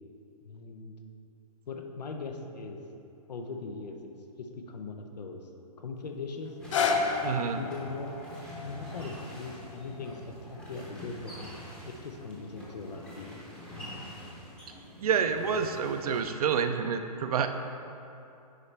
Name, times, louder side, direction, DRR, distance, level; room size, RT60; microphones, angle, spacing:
voice 1, 0.4-0.9 1.7-2.8 3.3-4.1 4.4-5.5 5.8-6.5 7.4-8.2 8.6-11.3 11.8-13.3 14.7-14.8 15.7-15.9 16.6-16.8, left 4 dB, 90° left, 4 dB, 0.8 m, -40 dB
sound 1, 6.4-12.5 13.2-13.3, left 4 dB, 50° left, 0.6 m, -34 dB
sound 2, 6.6-16.2, equal, 5° left, 0.8 m, -46 dB
voice 2, 7.2-7.6 15.0-17.5, right 7 dB, 65° right, 8 dB, 0.5 m, -28 dB
9.7 x 4.3 x 3.3 m, 2.8 s
hypercardioid pair, 165°, 20 cm